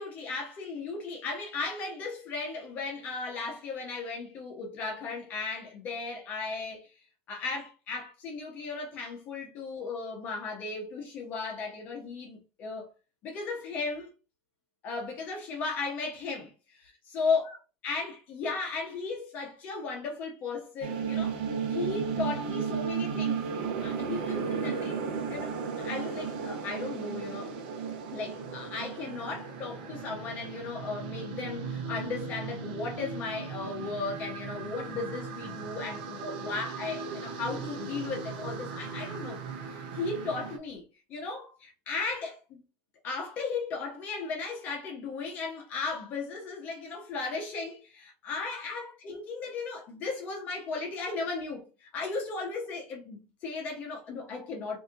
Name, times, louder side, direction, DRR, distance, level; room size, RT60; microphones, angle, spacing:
voice 1, 0.0-6.9 7.3-12.8 13.2-14.1 14.8-17.6 17.8-21.4 21.7-25.0 25.3-27.6 28.1-40.8 41.1-42.6 43.0-54.8, left 4 dB, 30° left, 0.9 m, -36 dB
sound 1, 20.8-40.6, right 6 dB, 70° right, 0.8 m, -35 dB
4.1 x 2.8 x 2.5 m
cardioid pair, 180°, 5 cm